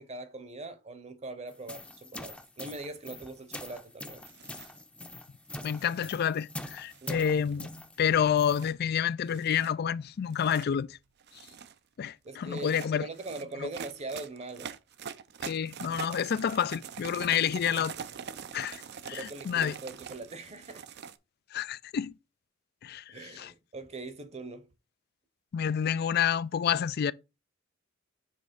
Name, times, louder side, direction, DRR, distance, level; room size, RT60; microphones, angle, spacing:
voice 1, 0.0-4.2 7.0-7.3 12.2-14.8 19.0-20.9 23.1-24.7, right 2 dB, 35° right, 0.9 m, -42 dB
sound 1, 1.5-8.7, left 1 dB, 5° left, 0.6 m, -44 dB
sound 2, 4.3-4.8 5.6-6.2 6.9-7.7 8.4-8.7 9.3-9.7 10.2-10.7 11.2-11.8 12.5-21.2, right 7 dB, 55° right, 0.5 m, -44 dB
voice 2, 5.6-7.7 8.0-10.9 12.0-13.1 13.6-13.7 15.4-17.9 18.5-18.8 19.1-19.8 21.5-22.1 22.8-23.0 23.4-23.5 25.5-27.1, left 8 dB, 50° left, 0.3 m, -29 dB
7.4 x 3.4 x 5.1 m
head